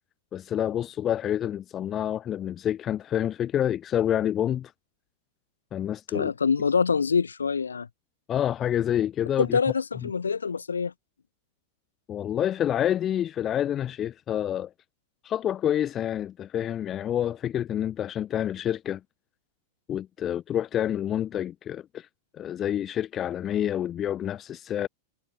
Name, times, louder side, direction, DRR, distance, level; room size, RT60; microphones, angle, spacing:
voice 1, 0.3-4.7 5.7-6.3 8.3-9.6 12.1-14.7 15.2-19.0 19.9-22.1 22.3-24.9, left 10 dB, 30° left, 2.1 m, -28 dB
voice 2, 6.1-7.9 9.4-10.9, left 5 dB, 75° left, 1.0 m, -25 dB
figure-of-eight pair, 90°, 0 cm